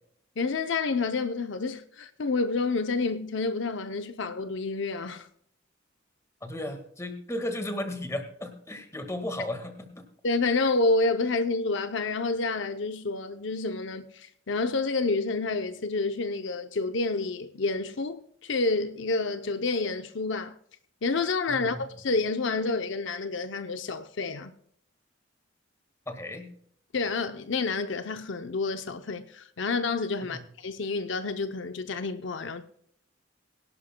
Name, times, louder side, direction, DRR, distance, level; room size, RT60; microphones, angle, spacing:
voice 1, 0.4-5.3 10.2-20.6 21.0-24.5 26.9-32.6, left 3 dB, 70° left, 0.6 m, -29 dB
voice 2, 6.4-10.0 21.5-21.9 26.1-26.5 30.3-30.4, left 1 dB, 15° left, 1.7 m, -35 dB
22.5 x 11.5 x 2.2 m
head